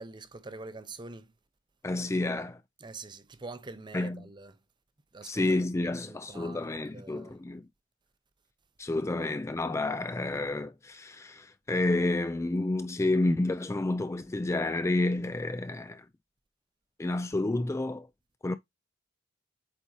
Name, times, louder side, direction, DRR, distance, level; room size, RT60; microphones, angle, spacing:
voice 1, 0.0-1.3 2.8-4.6 5.1-5.4 5.7-7.4, right 3 dB, 25° right, 0.6 m, -45 dB
voice 2, 1.8-2.6 3.9-4.3 5.2-7.6 8.8-16.1 17.0-18.1 18.4-18.6, left 2 dB, 15° left, 0.3 m, -30 dB
8.3 x 4.2 x 2.8 m
head